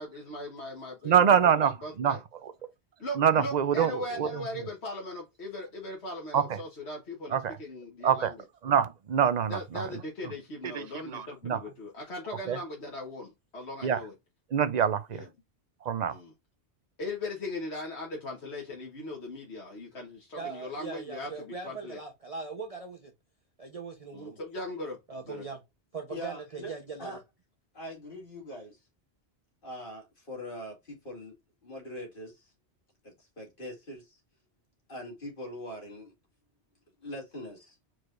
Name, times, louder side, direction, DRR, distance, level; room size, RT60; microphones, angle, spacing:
voice 1, 0.0-1.2 1.5-2.2 3.0-8.4 9.5-14.1 15.1-15.3 16.1-16.3 17.0-22.0 24.1-25.0 25.3-25.4, left 1 dB, 75° left, 1.6 m, -39 dB
voice 2, 1.0-2.2 3.2-4.4 6.3-6.4 7.3-7.5 8.0-8.3 8.6-9.9 10.7-11.6 12.5-12.6 13.8-14.0 14.5-15.2 15.9-16.2, right 8 dB, 50° right, 0.6 m, -25 dB
voice 3, 20.4-23.1 23.6-24.4 25.1-25.6 25.9-27.2, right 4 dB, 35° right, 1.0 m, -40 dB
voice 4, 26.1-26.7 27.0-27.2 27.7-28.8 29.6-31.4 31.6-32.5 33.0-34.2 34.9-36.1 37.0-37.7, equal, 50° left, 2.5 m, -42 dB
4.7 x 4.5 x 2.5 m
omnidirectional pair, 1.1 m